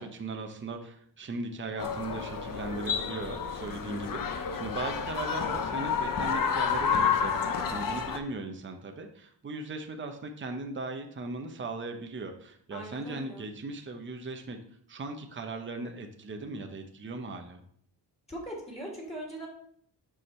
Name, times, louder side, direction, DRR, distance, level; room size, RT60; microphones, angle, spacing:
voice 1, 0.0-14.6 14.9-17.6, right 3 dB, 25° right, 4 dB, 0.9 m, -38 dB
sound 1, 1.8-8.2, left 6 dB, 50° left, 0.8 m, -30 dB
voice 2, 12.7-13.5 18.3-19.5, right 1 dB, 15° left, -3 dB, 2.5 m, -40 dB
6.7 x 5.0 x 4.3 m, 0.62 s
cardioid pair, 100°, 43 cm